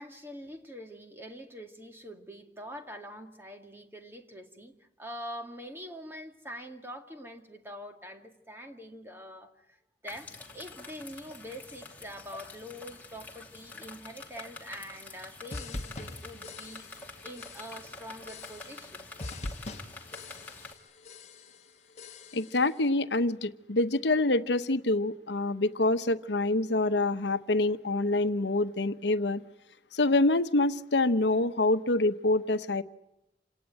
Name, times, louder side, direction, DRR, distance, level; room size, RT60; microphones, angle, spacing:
voice 1, 0.0-9.8 10.0-19.1, equal, 15° right, 4 dB, 2.1 m, -44 dB
sound 1, 10.1-20.7, left 3 dB, 10° left, 2.9 m, -47 dB
sound 2, 15.5-17.1 17.4-17.9 18.3-18.9 19.2-20.8 21.0-21.6 22.0-22.6, left 2 dB, 40° left, 1.4 m, -42 dB
voice 2, 22.3-29.4 29.9-32.8, left 2 dB, 70° left, 11 dB, 1.0 m, -26 dB
27.0 x 18.0 x 9.1 m, 0.87 s
head